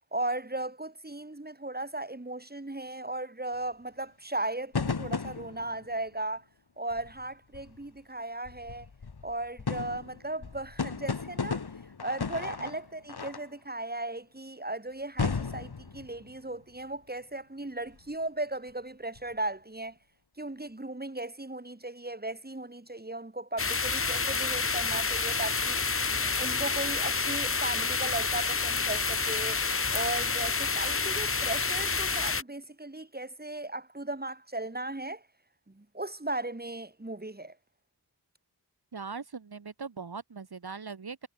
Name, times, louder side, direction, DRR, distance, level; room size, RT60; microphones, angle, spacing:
voice 1, 0.1-6.4 6.8-8.9 9.2-11.6 12.0-20.0 20.4-25.8 26.2-29.6 29.9-35.2 35.7-37.6, right 2 dB, 25° right, 4.4 m, -36 dB
sound 1, 4.7-5.9 6.9-7.3 7.5-7.9 8.5-13.5 15.2-16.5 17.9-18.1 19.2-19.3, left 5 dB, 70° left, 2.7 m, -35 dB
sound 2, 23.6-32.4, left 4 dB, 35° left, 0.9 m, -29 dB
voice 2, 38.9-41.3, right 5 dB, 70° right, 2.3 m, -40 dB
wide cardioid pair, 65°, 39 cm